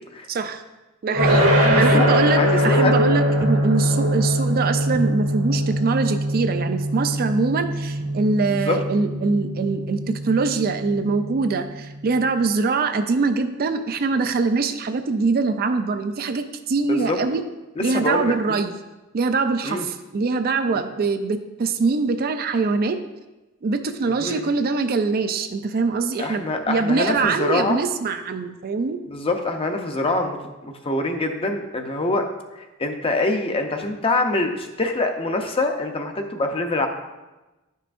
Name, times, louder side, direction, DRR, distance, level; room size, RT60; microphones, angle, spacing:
voice 1, 0.3-0.6 1.0-17.4 17.8-18.7 19.1-23.0 23.6-29.0, right 4 dB, 45° right, 8 dB, 0.4 m, -23 dB
sound 1, 1.1-12.1, equal, 85° right, 1.6 m, -22 dB
voice 2, 1.6-2.1 2.4-3.1 8.6-8.8 16.9-17.2 17.8-18.6 19.6-19.8 24.2-24.5 26.2-27.8 29.1-32.3 32.6-36.9, left 2 dB, 25° left, 4 dB, 0.6 m, -25 dB
10.5 x 5.5 x 2.5 m, 1.1 s
head